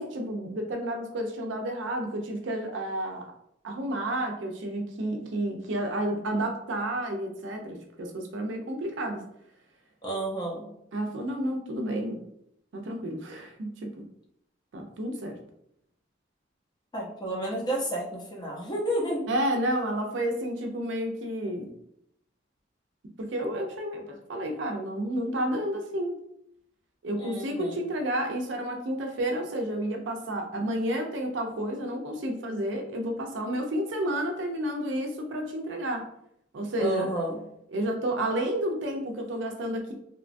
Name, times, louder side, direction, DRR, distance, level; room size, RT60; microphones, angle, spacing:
voice 1, 0.0-3.3 3.6-9.2 10.9-12.2 12.7-14.0 14.7-15.4 19.3-21.7 23.2-26.2 27.0-36.0 36.5-37.1 37.7-39.9, right 1 dB, 70° right, 3 dB, 0.5 m, -31 dB
voice 2, 10.0-10.7 16.9-19.3 27.2-27.8 36.8-37.4, right 1 dB, 20° left, -2 dB, 0.6 m, -31 dB
2.8 x 2.2 x 2.5 m, 0.74 s
head